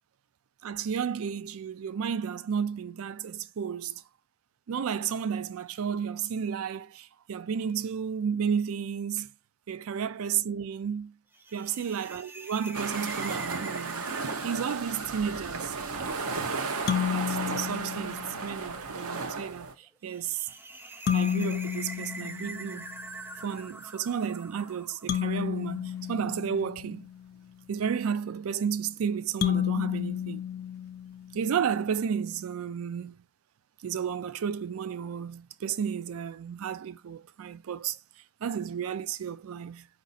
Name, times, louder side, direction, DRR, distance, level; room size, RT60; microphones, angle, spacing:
voice 1, 0.6-4.0 4.7-9.3 9.7-11.2 11.5-14.1 14.4-15.7 17.1-20.5 21.1-22.9 23.4-27.1 27.7-30.5 31.3-33.2 33.8-38.0 38.4-39.9, right 7 dB, 70° right, 0.4 m, -32 dB
sound 1, 11.3-25.7, right 2 dB, 10° right, 0.4 m, -45 dB
sound 2, 12.7-19.7, right 4 dB, 85° right, 0.7 m, -34 dB
sound 3, 16.9-18.5 21.1-23.1 25.1-27.2 29.4-31.5, left 9 dB, 50° left, 0.5 m, -31 dB
4.9 x 2.6 x 4.0 m
head